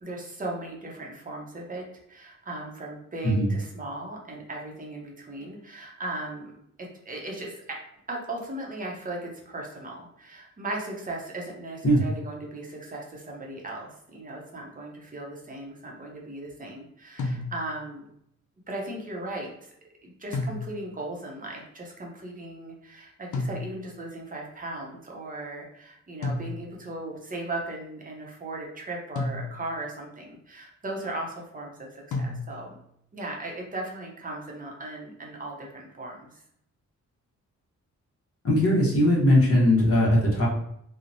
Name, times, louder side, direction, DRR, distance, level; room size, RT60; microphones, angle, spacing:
voice 1, 0.0-7.8 8.1-18.1 18.7-19.7 20.0-32.8 33.1-36.4, right 2 dB, 30° right, -1 dB, 0.6 m, -37 dB
sound 1, 17.2-17.9 20.3-21.1 23.3-24.1 26.2-27.0 29.2-29.9 32.1-32.9, left 2 dB, 80° left, 0.5 m, -33 dB
voice 2, 38.4-40.5, left 1 dB, 50° left, -5 dB, 0.9 m, -20 dB
2.9 x 2.0 x 2.5 m, 0.73 s
wide cardioid pair, 125°, 30 cm